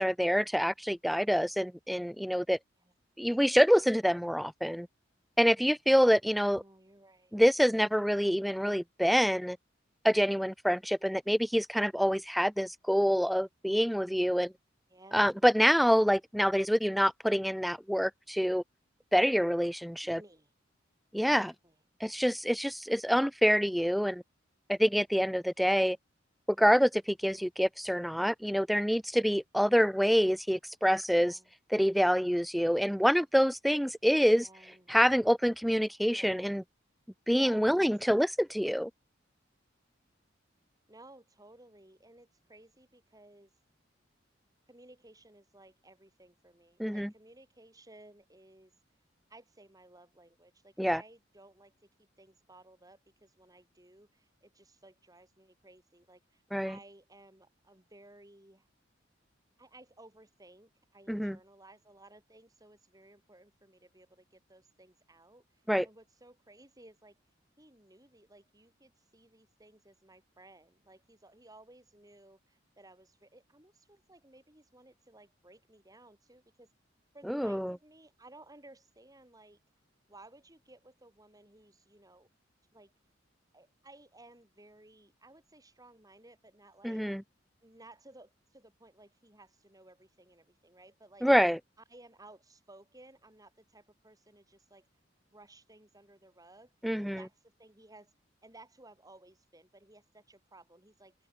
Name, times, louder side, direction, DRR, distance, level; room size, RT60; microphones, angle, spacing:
voice 1, 0.0-2.6 3.2-4.9 5.4-6.6 7.3-9.6 10.0-14.5 15.1-18.6 19.1-20.2 21.1-21.5 22.0-24.2 24.7-26.0 26.6-31.4 31.7-34.5 34.9-36.6 37.3-38.9 46.8-47.1 50.8-51.0 56.5-56.8 61.1-61.4 65.7-65.9 77.3-77.8 86.8-87.2 91.2-91.6 96.8-97.2, equal, ahead, 0.4 m, -26 dB
voice 2, 6.4-7.4 14.9-15.3 20.0-20.5 21.2-21.8 31.1-31.5 34.3-34.9 36.1-36.5 37.3-37.9 40.9-43.5 44.7-48.8 49.3-58.7 59.6-67.2 67.6-76.7 77.1-79.6 80.1-82.3 82.7-82.9 83.5-87.1 87.6-91.3 91.9-94.9 95.3-96.7 97.2-98.1 98.4-101.2, right 2 dB, 20° right, 7.0 m, -57 dB
open air
head